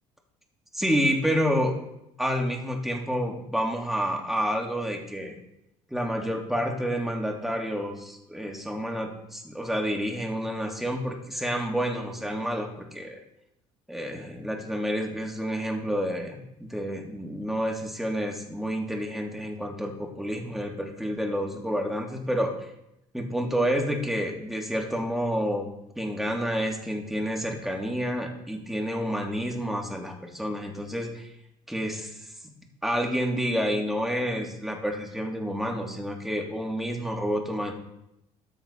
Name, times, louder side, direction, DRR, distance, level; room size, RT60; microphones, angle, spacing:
voice 1, 0.7-1.7 2.2-5.3 5.9-13.2 13.9-22.7 23.1-25.7 26.0-31.3 31.7-32.3 32.8-37.7, equal, ahead, 0 dB, 3.2 m, -29 dB
13.5 x 7.9 x 4.4 m, 0.83 s
hypercardioid pair, 65°, 16 cm